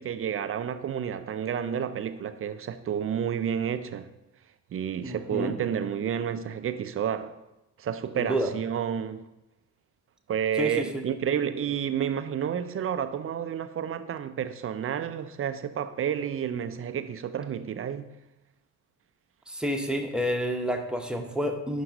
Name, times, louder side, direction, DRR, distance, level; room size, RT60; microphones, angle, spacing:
voice 1, 0.0-4.1 4.7-7.4 7.8-9.2 10.3-18.1, right 8 dB, 30° right, 0.5 m, -30 dB
voice 2, 5.0-5.5 8.3-8.5 10.6-11.0 19.5-21.8, equal, ahead, 1.0 m, -29 dB
11.0 x 4.7 x 2.7 m
figure-of-eight pair, 40°, 46 cm